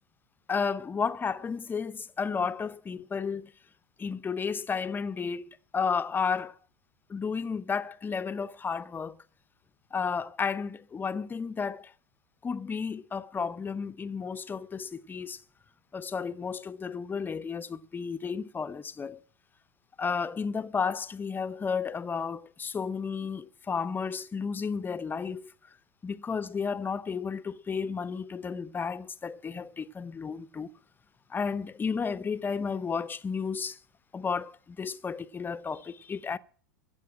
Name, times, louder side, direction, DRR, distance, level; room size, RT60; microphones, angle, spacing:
voice 1, 0.5-3.5 4.0-6.6 7.1-9.2 9.9-11.9 12.4-15.4 15.9-19.2 20.0-25.5 26.0-30.7 31.3-33.8 34.1-36.4, left 5 dB, 20° left, 0.8 m, -32 dB
15.5 x 8.2 x 8.7 m
hypercardioid pair, 90°, 10 cm